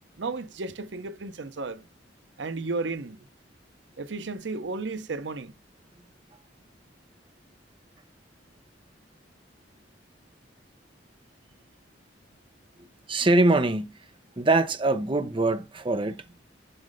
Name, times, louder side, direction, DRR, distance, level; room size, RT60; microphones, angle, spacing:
voice 1, 0.2-1.9 2.4-3.2 4.0-5.5, right 3 dB, 80° right, 0.7 m, -33 dB
voice 2, 13.1-13.9 14.4-16.2, right 2 dB, 30° right, 0.7 m, -23 dB
7.8 x 3.2 x 5.0 m
head